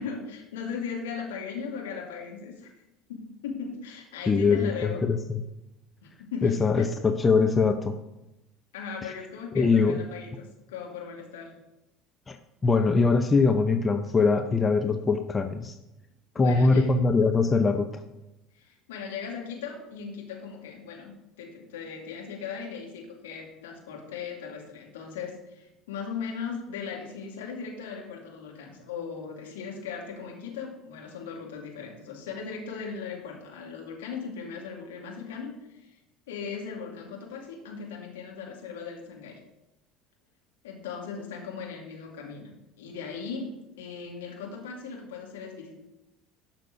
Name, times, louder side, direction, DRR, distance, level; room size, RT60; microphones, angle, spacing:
voice 1, 0.0-2.7 3.1-5.1 6.0-6.9 8.7-11.5 16.4-17.0 18.5-36.0 36.3-39.4 40.6-42.5 42.8-43.5 43.8-45.8, left 6 dB, 75° left, 0 dB, 2.3 m, -38 dB
voice 2, 4.3-5.4 6.4-7.9 9.6-10.0 12.3-12.4 12.6-15.7 16.3-17.9, left 4 dB, 25° left, 7 dB, 0.7 m, -22 dB
12.0 x 6.0 x 5.0 m, 0.94 s
figure-of-eight pair, 65°, 0 cm